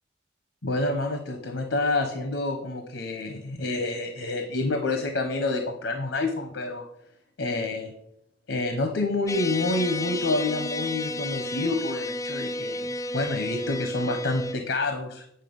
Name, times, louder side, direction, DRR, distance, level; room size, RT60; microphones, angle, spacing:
voice 1, 0.6-6.9 7.4-7.9 8.5-12.9 13.1-15.2, left 2 dB, 80° left, 5 dB, 1.0 m, -28 dB
sound 1, 9.3-14.5, left 2 dB, 15° left, 0.4 m, -32 dB
9.2 x 5.6 x 5.4 m, 0.75 s
head